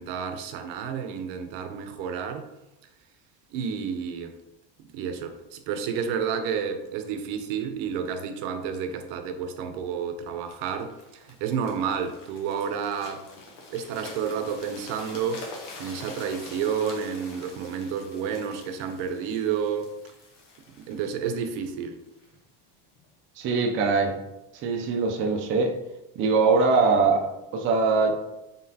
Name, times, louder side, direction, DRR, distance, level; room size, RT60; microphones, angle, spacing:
voice 1, 0.0-2.5 3.5-4.4 4.8-13.3 13.7-15.4 15.8-19.9 20.8-22.0, right 7 dB, 80° right, 7 dB, 0.7 m, -30 dB
sound 1, 10.5-22.4 23.0-23.1, left 3 dB, 70° left, 1.2 m, -46 dB
voice 2, 23.4-24.2 24.6-25.7 26.2-28.1, right 4 dB, 30° right, 1 dB, 0.4 m, -22 dB
3.9 x 3.7 x 2.7 m, 0.92 s
cardioid pair, 160°, 44 cm